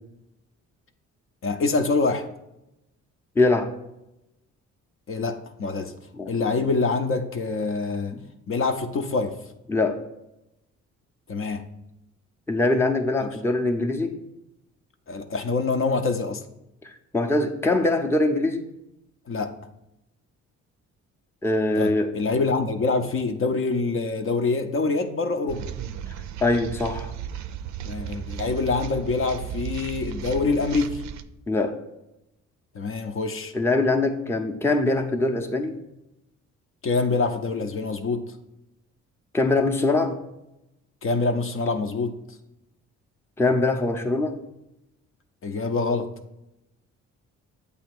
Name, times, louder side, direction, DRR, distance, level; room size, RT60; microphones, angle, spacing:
voice 1, 1.4-2.3 5.1-5.9 6.3-8.2 8.5-9.4 11.3-11.7 13.2-13.3 15.1-16.4 19.3-19.6 21.8-25.8 27.8-31.0 32.7-33.5 36.8-38.3 41.0-42.2 45.4-46.1, left 3 dB, 45° left, 0.6 m, -25 dB
voice 2, 3.4-3.7 6.2-6.3 8.1-8.2 9.7-10.0 12.5-14.2 16.8-18.7 21.4-22.1 26.4-27.1 31.5-31.8 33.5-35.8 39.3-40.2 43.4-44.4, left 2 dB, 10° left, 0.6 m, -23 dB
sound 1, 25.5-31.2, right 9 dB, 70° right, 0.5 m, -35 dB
8.1 x 2.8 x 6.0 m
cardioid pair, 90°, 30 cm